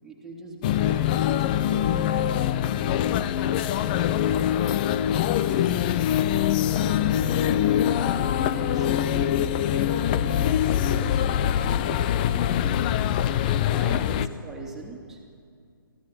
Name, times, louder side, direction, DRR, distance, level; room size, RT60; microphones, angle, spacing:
voice 1, 0.0-1.3 5.1-5.7 7.1-9.5 9.9-12.5 13.4-15.2, right 2 dB, 5° right, -2 dB, 2.9 m, -41 dB
sound 1, 0.6-14.3, left 10 dB, 25° left, 0.6 m, -23 dB
voice 2, 3.1-4.3 8.8-9.3 13.7-14.4, left 1 dB, 70° left, -4 dB, 4.5 m, -46 dB
24.0 x 15.5 x 9.4 m, 2.4 s
figure-of-eight pair, 135°, 12 cm